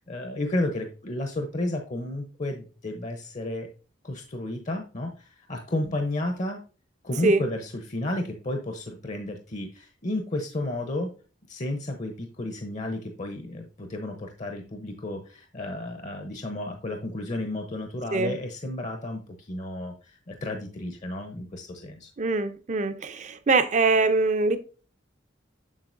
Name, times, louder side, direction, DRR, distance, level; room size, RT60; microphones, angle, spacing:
voice 1, 0.1-3.7 4.0-6.6 7.0-11.1 11.5-22.1, left 1 dB, 40° left, 0.7 m, -32 dB
voice 2, 22.2-24.6, right 3 dB, 40° right, 0.6 m, -23 dB
7.4 x 6.5 x 2.6 m
head